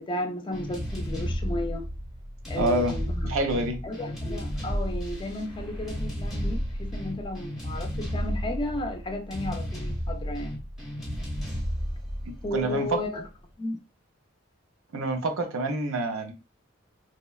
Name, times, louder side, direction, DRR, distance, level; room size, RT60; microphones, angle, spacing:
voice 1, 0.0-1.9 2.5-3.3 3.8-10.6 12.4-13.3 13.6-13.8, left 1 dB, 25° left, 0.4 m, -33 dB
sound 1, 0.5-13.3, equal, ahead, 0.8 m, -33 dB
voice 2, 2.6-2.9 3.2-3.8 12.2-13.0 14.9-16.3, right 2 dB, 80° right, 0.5 m, -27 dB
2.8 x 2.1 x 2.3 m
head